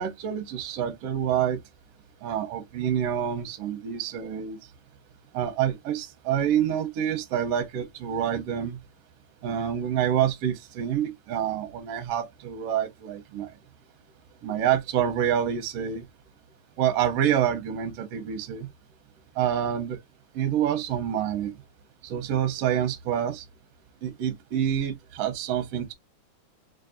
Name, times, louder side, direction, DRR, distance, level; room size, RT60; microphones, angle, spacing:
voice 1, 0.0-1.6 2.2-4.6 5.3-8.8 9.4-13.5 14.4-16.0 16.8-18.7 19.4-20.0 20.3-21.5 22.0-23.4 24.0-25.9, right 9 dB, 75° right, 1.4 m, -27 dB
4.6 x 2.5 x 2.5 m
omnidirectional pair, 3.4 m